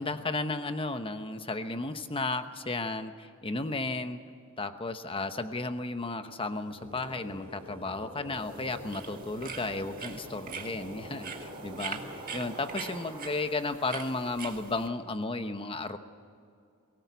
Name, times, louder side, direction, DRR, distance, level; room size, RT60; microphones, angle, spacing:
voice 1, 0.0-4.2 4.6-16.0, left 2 dB, 25° left, 9 dB, 1.0 m, -34 dB
sound 1, 6.5-13.9, right 1 dB, 25° right, 4.2 m, -45 dB
sound 2, 8.3-14.9, right 6 dB, 40° right, 1.7 m, -43 dB
23.0 x 18.5 x 8.3 m, 2.5 s
head